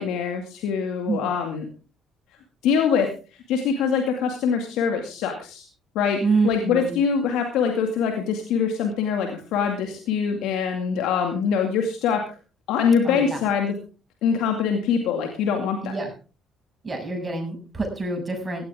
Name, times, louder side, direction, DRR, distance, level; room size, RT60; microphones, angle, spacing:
voice 1, 0.0-1.6 2.6-3.1 3.5-5.7 5.9-6.2 6.4-12.2 12.7-13.7 14.2-15.9, left 6 dB, 80° left, 4 dB, 2.3 m, -23 dB
voice 2, 6.2-7.0 13.0-13.4 15.8-16.1 16.8-18.7, right 3 dB, 25° right, 2 dB, 7.3 m, -26 dB
16.5 x 13.5 x 3.7 m, 0.35 s
supercardioid pair, 65°, 0 cm